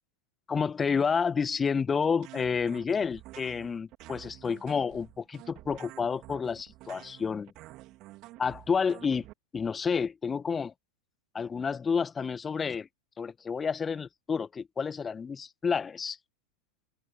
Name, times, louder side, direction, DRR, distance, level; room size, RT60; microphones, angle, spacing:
voice 1, 0.5-7.5 8.4-9.3 9.5-10.7 11.3-12.9 13.2-16.2, left 6 dB, 15° left, 1.9 m, -30 dB
sound 1, 2.2-9.3, right 18 dB, 40° right, 4.4 m, -49 dB
open air
figure-of-eight pair, 90°, 0 cm